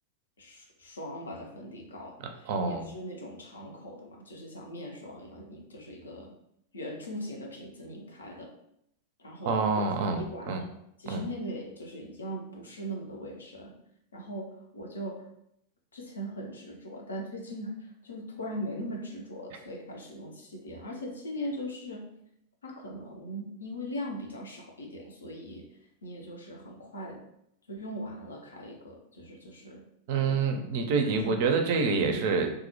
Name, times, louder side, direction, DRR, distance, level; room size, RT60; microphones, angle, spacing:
voice 1, 0.4-6.4 6.7-8.5 9.2-9.9 10.1-10.7 11.0-13.7 14.1-15.3 15.9-22.1 22.6-27.2 27.7-29.8 30.2-30.4 31.1-31.6 31.9-32.2, equal, 70° left, 1 dB, 0.5 m, -40 dB
voice 2, 2.5-2.9 9.5-10.6 11.1-11.2 30.1-32.5, right 4 dB, 50° right, 4 dB, 0.4 m, -27 dB
2.2 x 2.0 x 2.8 m, 0.75 s
figure-of-eight pair, 90°, 0 cm